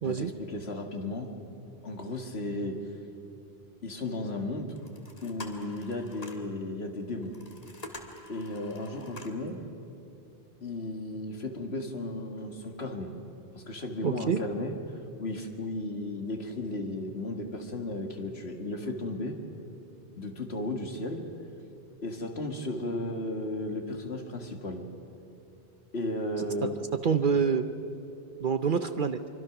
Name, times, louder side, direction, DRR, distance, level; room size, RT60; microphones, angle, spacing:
voice 1, 0.0-1.3 1.8-2.9 3.8-4.8 5.2-7.4 8.3-9.6 10.6-13.1 13.5-19.4 20.2-21.2 22.0-24.8 25.9-26.8, left 2 dB, 65° left, 4 dB, 2.1 m, -34 dB
sound 1, 4.8-6.5 7.2-9.5, left 2 dB, 35° left, 1.9 m, -46 dB
voice 2, 14.0-14.4 26.4-26.7 27.0-27.7 28.4-29.2, right 6 dB, 50° right, 9 dB, 0.8 m, -27 dB
25.0 x 24.5 x 6.0 m, 2.7 s
omnidirectional pair, 1.2 m